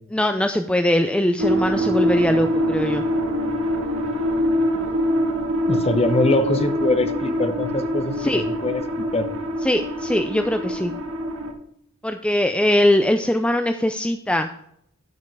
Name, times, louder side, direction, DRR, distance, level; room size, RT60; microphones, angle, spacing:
voice 1, 0.1-3.0 8.2-8.4 9.6-10.9 12.0-14.5, left 1 dB, 5° left, 7 dB, 0.5 m, -21 dB
sound 1, 1.4-11.5, equal, 70° right, 1.8 m, -24 dB
voice 2, 5.7-9.3, left 2 dB, 30° left, 9 dB, 1.0 m, -23 dB
12.5 x 5.4 x 4.7 m, 0.70 s
head